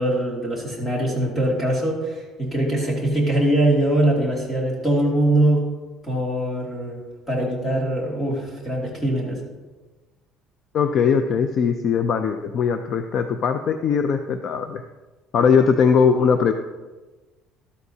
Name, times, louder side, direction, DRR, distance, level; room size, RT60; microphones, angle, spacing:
voice 1, 0.0-5.7 6.0-7.0 7.3-9.4, right 1 dB, 10° left, -3 dB, 2.4 m, -22 dB
voice 2, 10.7-14.8 15.3-16.5, left 6 dB, 40° left, 7 dB, 0.4 m, -20 dB
12.5 x 12.5 x 2.8 m, 1.2 s
cardioid pair, 180°, 0 cm